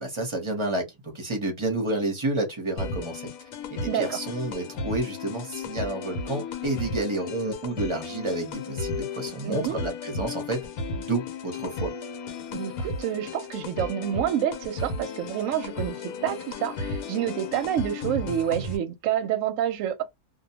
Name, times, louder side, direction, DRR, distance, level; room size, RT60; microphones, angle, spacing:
voice 1, 0.0-3.3 3.7-10.6 11.0-11.9, right 2 dB, 25° right, 0.7 m, -30 dB
sound 1, 2.8-18.8, left 3 dB, 80° left, 1.1 m, -34 dB
voice 2, 3.9-4.2 9.4-9.8 12.5-20.0, right 10 dB, 70° right, 0.9 m, -28 dB
2.4 x 2.1 x 2.8 m
omnidirectional pair, 1.5 m